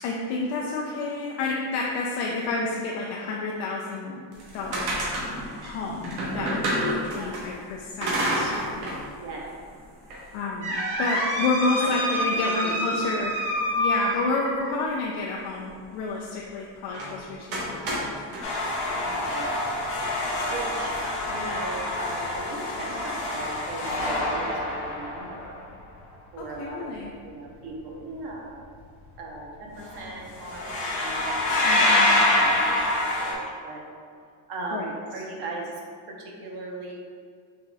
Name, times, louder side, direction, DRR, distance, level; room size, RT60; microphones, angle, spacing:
voice 1, 0.0-4.2 4.5-4.9 5.6-8.5 10.3-13.3 13.7-18.1 26.4-27.1 31.6-32.4 34.7-34.9, left 3 dB, 70° left, -3 dB, 0.7 m, -30 dB
sound 1, 4.3-7.4 8.0-9.0 9.4-9.5 10.1-14.8 16.9-17.1 17.5-18.4, equal, 85° right, 1.4 m, -28 dB
voice 2, 5.2-5.7 7.2-7.5 9.2-9.5 11.2-11.3 11.8-11.9 12.2-13.3 19.0-19.5 20.5-25.6 26.3-26.9 27.2-28.7 29.2-33.4 33.6-33.8 34.5-35.7 36.1-36.9, right 2 dB, 55° right, -2 dB, 1.0 m, -38 dB
sound 2, 18.4-25.5 29.8-30.0 30.3-33.3, left 1 dB, 90° left, 1.4 m, -26 dB
5.8 x 3.8 x 2.4 m, 2.2 s
cardioid pair, 145°, 48 cm